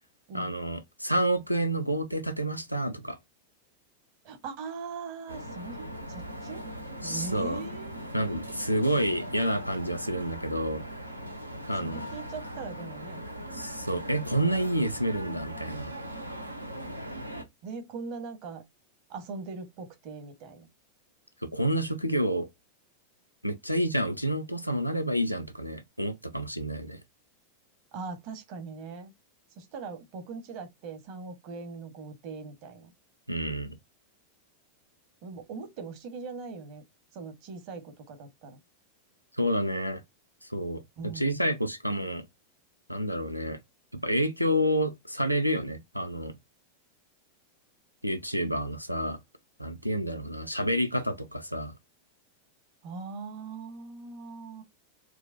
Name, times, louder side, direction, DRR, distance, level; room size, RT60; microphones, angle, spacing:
voice 1, 0.3-3.2 7.0-7.6 8.1-10.8 11.7-12.1 13.5-15.9 21.4-22.5 23.4-27.0 33.3-33.8 39.4-40.0 40.4-40.8 41.1-42.2 42.9-43.6 44.0-46.3 48.0-49.2 49.6-51.7, equal, 90° left, 0.6 m, -29 dB
voice 2, 4.2-6.6 7.0-8.1 11.7-13.2 17.6-18.6 19.1-20.7 27.9-29.1 29.6-32.9 35.2-36.8 37.1-38.6 41.0-41.4 52.8-54.6, right 4 dB, 45° right, 1.0 m, -40 dB
sound 1, 5.3-17.4, equal, 85° right, 0.6 m, -40 dB
4.6 x 2.3 x 2.5 m
figure-of-eight pair, 90°, 0 cm